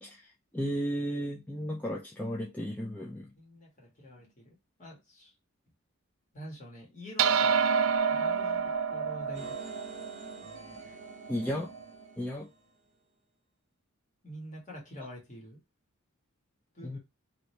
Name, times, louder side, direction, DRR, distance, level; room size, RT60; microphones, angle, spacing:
voice 1, 0.0-3.3 10.9-11.0 11.3-11.7 12.2-12.5 16.8-17.0, equal, 10° left, 0.3 m, -34 dB
voice 2, 3.4-5.3 6.3-7.7 8.1-9.6 14.2-15.6 16.7-17.0, equal, 35° left, 1.4 m, -46 dB
sound 1, 7.2-11.8, right 6 dB, 80° right, 0.3 m, -29 dB
sound 2, 9.3-12.7, right 2 dB, 30° right, 0.7 m, -50 dB
2.8 x 2.7 x 3.1 m
head